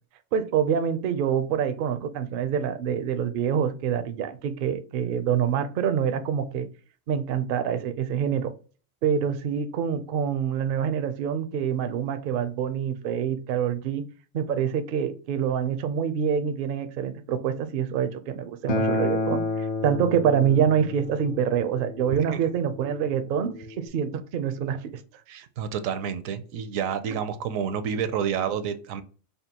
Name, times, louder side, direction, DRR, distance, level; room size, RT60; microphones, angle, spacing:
voice 1, 0.3-6.7 7.1-8.5 9.0-14.0 14.3-19.4 19.8-24.8, right 8 dB, 65° right, 0.5 m, -26 dB
Acoustic guitar, 18.7-23.9, left 2 dB, 60° left, 1.0 m, -31 dB
voice 2, 25.3-29.0, right 8 dB, 80° right, 1.0 m, -29 dB
5.2 x 2.3 x 2.8 m
omnidirectional pair, 1.4 m